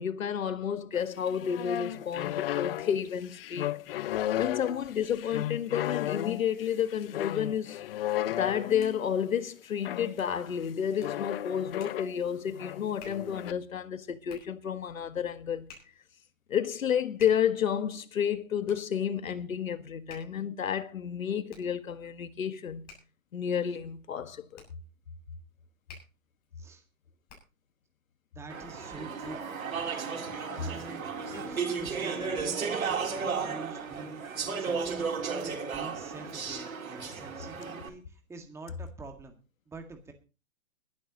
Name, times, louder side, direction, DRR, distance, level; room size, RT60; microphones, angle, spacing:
voice 1, 0.0-3.7 4.4-7.8 8.4-15.7 16.5-22.8 23.3-24.6, left 8 dB, 70° left, 1.7 m, -31 dB
sound 1, 0.9-9.1 9.9-10.2 11.0-12.1 12.5-13.5, left 13 dB, 45° left, 0.8 m, -34 dB
Hands, 8.6-27.7, left 5 dB, 20° left, 7.4 m, -57 dB
voice 2, 28.4-29.4 30.5-35.1 35.4-39.4 39.7-40.1, right 3 dB, 5° right, 1.9 m, -46 dB
Speech / Chatter, 28.5-37.9, right 5 dB, 75° right, 3.6 m, -34 dB
22.0 x 11.5 x 3.0 m
hypercardioid pair, 135°, 41 cm